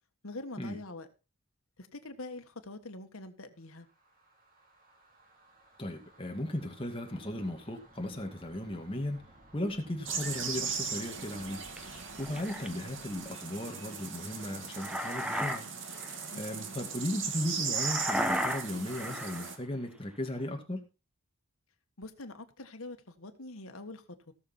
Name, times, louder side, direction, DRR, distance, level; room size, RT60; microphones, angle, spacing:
voice 1, 0.2-1.1 1.8-3.9 16.3-16.9 22.0-24.3, left 2 dB, 80° left, 7 dB, 1.6 m, -45 dB
sound 1, 3.6-13.3, right 1 dB, 40° right, 3.1 m, -59 dB
voice 2, 5.8-9.2 9.5-15.7 16.4-20.9, left 1 dB, 25° left, 3 dB, 2.3 m, -36 dB
sound 2, 10.1-19.6, right 6 dB, 60° right, 2.0 m, -38 dB
sound 3, 11.8-12.7 14.5-15.6 15.9-16.2 17.7-19.5, equal, 5° right, 0.9 m, -34 dB
17.5 x 6.8 x 4.4 m, 0.31 s
head